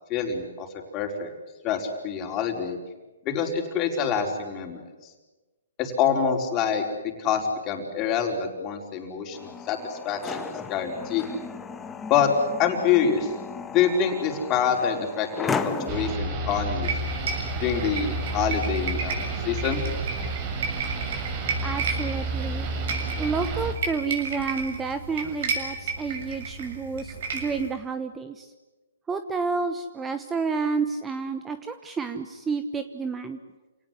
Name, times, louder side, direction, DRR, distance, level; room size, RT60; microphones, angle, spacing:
voice 1, 0.1-0.7 0.9-1.3 1.6-2.8 3.2-4.8 5.8-6.8 7.2-10.4 10.7-11.2 12.1-12.3 12.6-13.3 13.7-16.9 17.6-19.8, left 7 dB, 25° left, 2 dB, 4.7 m, -26 dB
sound 1, 9.3-16.1, left 5 dB, 10° left, 1.6 m, -35 dB
sound 2, 15.9-23.7, right 2 dB, 35° right, 5.0 m, -30 dB
sound 3, 16.8-27.7, right 4 dB, 55° right, 7.0 m, -33 dB
voice 2, 21.6-22.7 23.2-28.5 29.1-33.4, right 5 dB, 10° right, 9 dB, 1.1 m, -30 dB
28.5 x 18.5 x 10.0 m, 1.2 s
hypercardioid pair, 150°, 0 cm